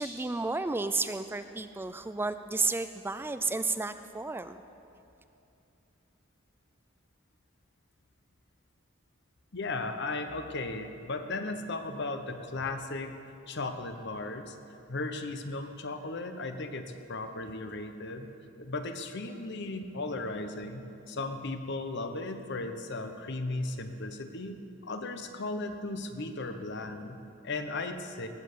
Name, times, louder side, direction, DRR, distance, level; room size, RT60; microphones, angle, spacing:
voice 1, 0.0-4.6, right 3 dB, 10° right, 10 dB, 0.3 m, -32 dB
voice 2, 9.5-13.2 13.5-14.6 14.9-18.3 18.6-28.3, left 2 dB, 60° left, 7 dB, 1.0 m, -36 dB
19.5 x 7.6 x 6.7 m, 2.8 s
head